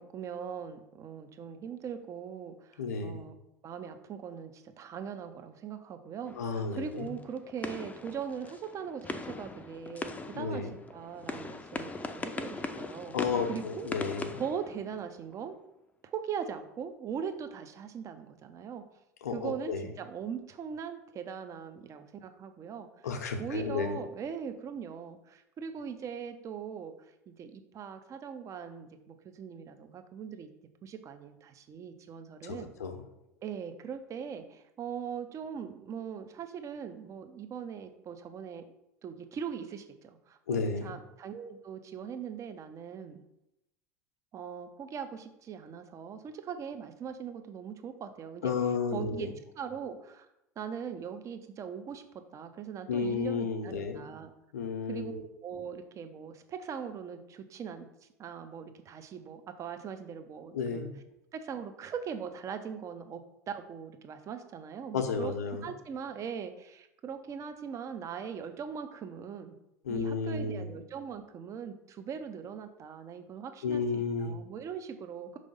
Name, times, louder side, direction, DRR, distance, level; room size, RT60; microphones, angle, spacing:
voice 1, 0.0-3.4 3.6-13.1 13.5-13.9 14.4-15.6 16.0-18.8 19.3-22.9 23.4-26.9 27.3-30.5 30.8-32.7 33.4-38.6 39.0-43.2 44.3-48.5 48.9-49.3 49.6-50.3 50.6-52.0 52.3-54.3 54.9-57.9 58.2-60.9 61.3-63.2 63.5-65.3 65.6-69.5 69.9-75.4, right 7 dB, 35° right, 8 dB, 0.8 m, -40 dB
voice 2, 2.8-3.2 6.4-7.1 10.3-10.7 13.1-14.4 19.2-19.8 23.0-24.0 32.4-33.0 40.5-40.9 48.4-49.3 52.9-54.0 54.5-55.2 60.5-60.9 64.9-65.7 69.8-70.7 73.6-74.4, left 5 dB, 75° left, 6 dB, 0.8 m, -32 dB
sound 1, 6.3-15.3, left 3 dB, 15° left, 0.6 m, -41 dB
5.2 x 3.3 x 5.4 m, 0.86 s
hypercardioid pair, 75°, 9 cm